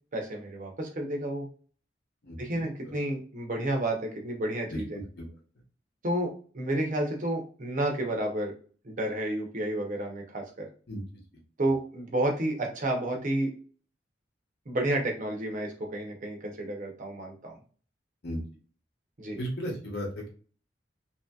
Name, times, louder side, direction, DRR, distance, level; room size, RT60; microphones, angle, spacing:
voice 1, 0.1-1.5 2.4-5.0 6.0-8.5 8.8-10.7 11.6-13.5 14.7-17.6 19.2-19.4, right 1 dB, 45° right, 2 dB, 0.7 m, -31 dB
voice 2, 2.2-2.9 4.7-4.8 5.2-5.3 10.9-11.0 18.2-18.4 19.3-20.3, equal, 60° left, -1 dB, 0.9 m, -35 dB
2.8 x 2.7 x 2.3 m, 0.42 s
head